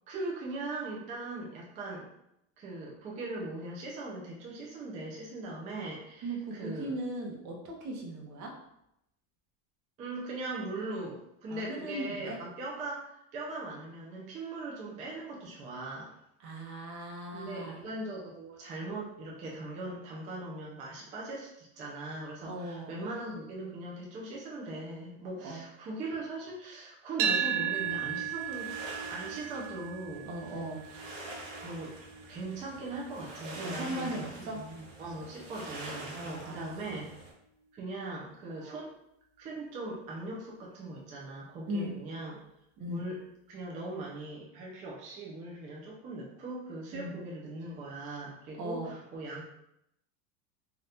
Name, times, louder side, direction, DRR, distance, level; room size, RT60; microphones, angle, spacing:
voice 1, 0.1-2.1 2.6-6.9 10.0-16.1 17.3-28.7 29.1-30.3 31.6-31.9 32.3-37.1 37.7-38.9 39.4-42.4 42.9-43.2 43.5-49.5, right 2 dB, 20° right, -3 dB, 0.3 m, -40 dB
voice 2, 6.2-8.5 11.5-12.4 16.4-17.8 22.5-22.9 25.4-25.6 30.2-30.8 33.6-34.6 36.1-37.0 38.6-38.8 41.7-41.9 42.8-43.1 46.9-47.2 48.6-48.9, right 1 dB, 45° right, 0 dB, 0.8 m, -38 dB
sound 1, 27.2-35.4, right 8 dB, 85° right, 0.5 m, -36 dB
sound 2, 27.7-37.3, right 2 dB, 70° right, 1.0 m, -46 dB
2.8 x 2.3 x 3.3 m, 0.80 s
supercardioid pair, 150°, 43 cm